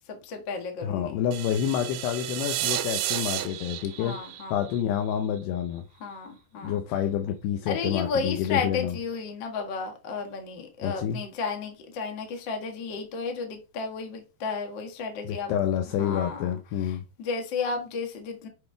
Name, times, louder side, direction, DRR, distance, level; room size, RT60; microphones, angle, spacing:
voice 1, 0.1-1.2 4.0-4.6 6.0-6.8 7.7-15.5 16.0-16.5 16.8-18.5, left 5 dB, 60° left, 1.1 m, -33 dB
voice 2, 0.8-5.8 6.6-8.9 10.8-11.2 15.2-17.0, left 9 dB, 90° left, 2.9 m, -28 dB
sound 1, 1.3-5.4, right 13 dB, 80° right, 2.2 m, -32 dB
8.2 x 5.3 x 3.4 m
omnidirectional pair, 4.7 m